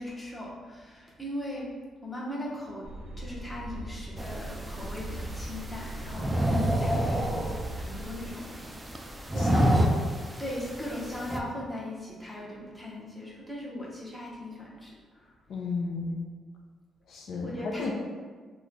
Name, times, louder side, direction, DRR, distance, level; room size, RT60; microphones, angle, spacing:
voice 1, 0.0-1.7 2.0-2.9 3.2-8.5 8.9-9.0 9.3-9.8 10.4-15.3 17.4-17.9, left 1 dB, 10° left, -5 dB, 0.9 m, -39 dB
sound 1, 2.8-8.3, right 1 dB, 90° right, 0.5 m, -39 dB
sound 2, 4.2-11.4, equal, 10° right, 0.3 m, -29 dB
voice 2, 9.5-10.0 15.5-16.2 17.1-17.9, left 3 dB, 65° left, 0 dB, 0.4 m, -33 dB
3.0 x 2.2 x 3.7 m, 1.5 s
cardioid pair, 90°, 0 cm